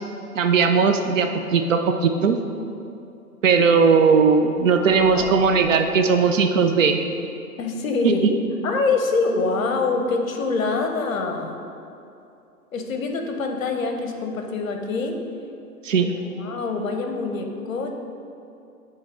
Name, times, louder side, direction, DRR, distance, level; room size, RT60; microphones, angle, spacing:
voice 1, 0.4-2.4 3.4-7.0 15.8-16.1, right 5 dB, 55° right, 5 dB, 0.5 m, -18 dB
sound 1, 4.3-6.8, left 1 dB, 5° left, 0.8 m, -38 dB
voice 2, 7.6-8.3 8.6-11.6 12.7-15.2 16.1-18.0, left 3 dB, 60° left, 4 dB, 0.8 m, -25 dB
8.9 x 3.2 x 3.6 m, 2.6 s
hypercardioid pair, 140°, 47 cm